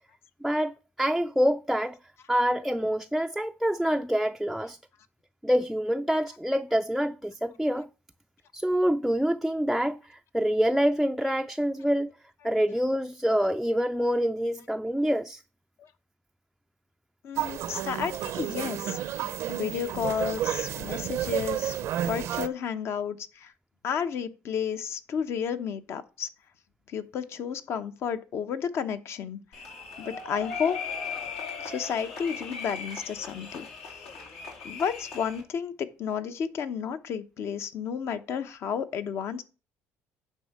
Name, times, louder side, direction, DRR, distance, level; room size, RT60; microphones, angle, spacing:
voice 1, 0.4-2.0 2.3-4.8 5.4-7.9 8.5-12.1 12.4-15.4, equal, ahead, 0.3 m, -26 dB
voice 2, 17.2-19.0 19.5-21.8 22.1-23.5 23.8-26.3 26.9-29.4 30.0-30.8 31.6-33.7 34.6-39.4, left 7 dB, 60° left, 0.9 m, -32 dB
sound 1, 17.4-22.5, right 11 dB, 70° right, 0.5 m, -31 dB
sound 2, 29.5-35.4, left 5 dB, 85° left, 3.0 m, -38 dB
9.3 x 3.7 x 6.6 m
cardioid pair, 95°, 5 cm